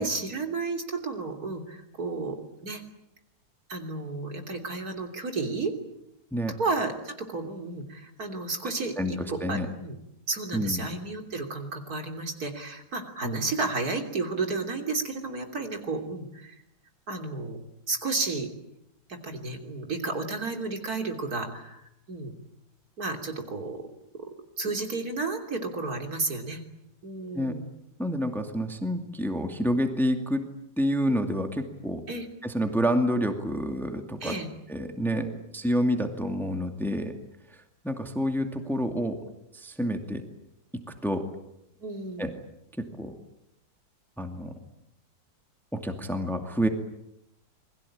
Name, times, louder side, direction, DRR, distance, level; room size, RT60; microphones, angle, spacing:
voice 1, 0.0-2.4 2.6-2.8 3.7-5.7 6.6-10.0 10.3-16.6 17.1-17.6 17.9-18.5 19.1-21.8 22.1-22.3 23.0-23.8 24.6-26.6 27.0-27.6 32.1-32.3 34.2-34.5 35.1-35.4 41.8-42.3, right 3 dB, 55° right, 4 dB, 3.7 m, -32 dB
voice 2, 9.0-9.7 10.5-10.8 13.2-13.4 27.3-27.5 28.0-30.4 30.8-32.0 32.4-34.3 34.7-35.3 35.5-37.1 37.8-39.2 39.5-40.2 41.0-41.2 42.2-42.3 43.0-43.1 44.2-44.5 45.7-46.7, equal, ahead, 5 dB, 2.2 m, -28 dB
28.5 x 21.5 x 8.7 m, 0.82 s
omnidirectional pair, 1.9 m